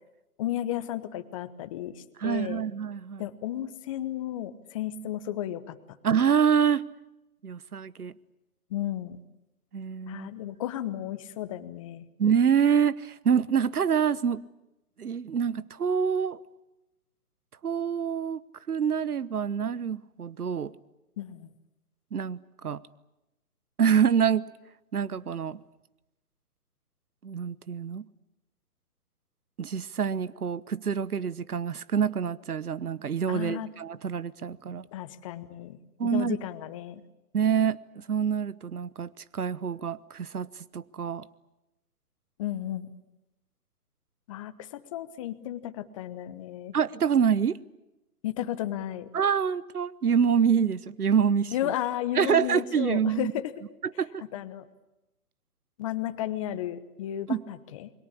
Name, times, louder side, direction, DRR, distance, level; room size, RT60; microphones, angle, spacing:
voice 1, 0.4-2.6 3.2-6.0 8.7-9.2 10.1-12.1 21.2-21.5 33.3-33.7 34.9-37.0 42.4-42.9 44.3-46.7 48.2-49.1 51.5-53.5 54.3-54.6 55.8-57.9, left 12 dB, 20° left, 1.0 m, -34 dB
voice 2, 2.2-3.2 6.0-6.8 7.4-8.1 9.7-10.3 12.2-14.4 15.0-16.4 17.6-18.4 18.7-20.7 22.1-22.8 23.8-24.5 24.9-25.6 27.2-28.0 29.6-34.8 36.0-36.4 37.3-40.5 40.7-41.2 46.7-47.6 49.1-51.5 52.2-53.3 54.0-54.2 57.3-57.4, right 7 dB, 75° right, 1.1 m, -26 dB
28.0 x 22.0 x 8.6 m
figure-of-eight pair, 145°, 45 cm